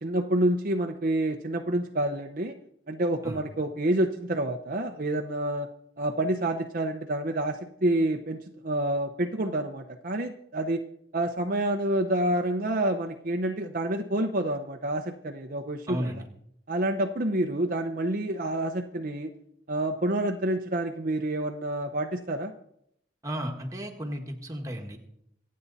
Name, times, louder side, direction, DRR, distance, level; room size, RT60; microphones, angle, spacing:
voice 1, 0.0-2.6 2.9-5.7 6.0-10.8 11.1-16.1 16.7-19.3 19.7-22.5, right 1 dB, 45° right, 3 dB, 0.8 m, -28 dB
voice 2, 15.9-16.3 23.2-25.0, equal, 15° right, 2 dB, 1.6 m, -34 dB
25.5 x 8.6 x 4.1 m, 0.74 s
head